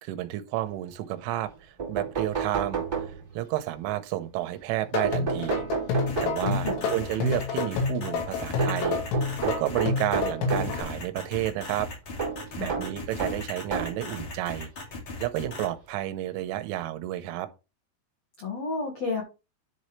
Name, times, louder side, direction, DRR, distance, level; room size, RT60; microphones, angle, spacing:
voice 1, 0.0-5.6 6.2-9.0 9.4-11.9 12.6-14.7 15.2-17.5, right 14 dB, 80° right, 3.2 m, -31 dB
sound 1, 1.5-1.6 1.8-3.5 5.0-7.1 8.6-10.8 12.2-14.1 14.9-15.0 16.3-16.4 16.8-16.9, right 5 dB, 20° right, 1.1 m, -31 dB
sound 2, 4.8-10.8, left 4 dB, 85° left, 5.0 m, -29 dB
sound 3, 6.1-15.7, left 2 dB, 45° left, 2.8 m, -38 dB
voice 2, 6.4-6.9 12.6-12.8 18.4-19.2, left 4 dB, 70° left, 1.5 m, -32 dB
10.5 x 5.5 x 3.2 m
omnidirectional pair, 5.7 m